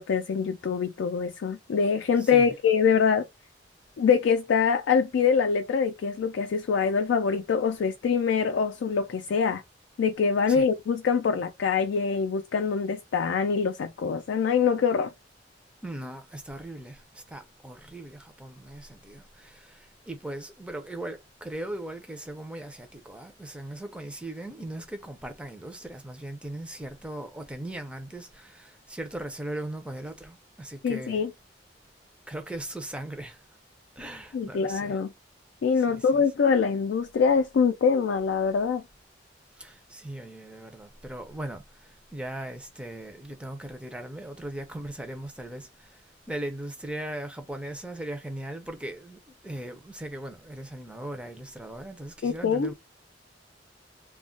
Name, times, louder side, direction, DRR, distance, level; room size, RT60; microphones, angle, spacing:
voice 1, 0.0-3.3 4.0-9.6 10.0-15.1 30.8-31.3 34.3-35.1 35.6-38.8 52.2-52.7, left 6 dB, 85° left, 0.3 m, -24 dB
voice 2, 2.2-2.5 10.5-10.7 15.8-31.3 32.3-33.4 34.0-35.0 35.8-36.2 39.6-52.7, right 1 dB, 5° right, 0.4 m, -39 dB
2.2 x 2.1 x 3.6 m
head